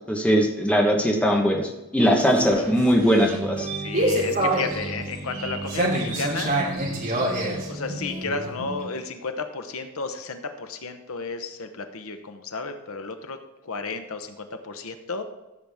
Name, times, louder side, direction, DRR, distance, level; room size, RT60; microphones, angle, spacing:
voice 1, 0.1-3.7, equal, 5° left, 0 dB, 1.2 m, -20 dB
sound 1, 2.0-8.8, right 1 dB, 40° right, 3.1 m, -27 dB
voice 2, 3.7-6.5 7.7-13.4 13.6-15.2, left 4 dB, 70° left, 7 dB, 0.9 m, -33 dB
14.5 x 7.7 x 3.6 m, 1.0 s
head